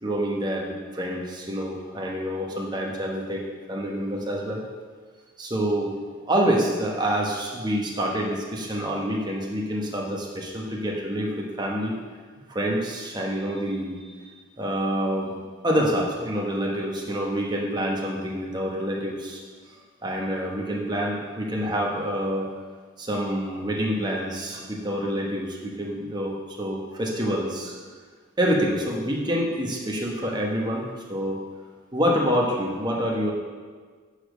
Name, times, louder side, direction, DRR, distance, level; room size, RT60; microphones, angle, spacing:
voice 1, 0.0-4.6 5.4-5.9 6.2-11.9 12.5-19.4 20.0-22.5 23.0-27.8 28.4-31.4 31.9-33.3, equal, 20° right, -2 dB, 1.2 m, -27 dB
8.7 x 5.0 x 6.4 m, 1.5 s
head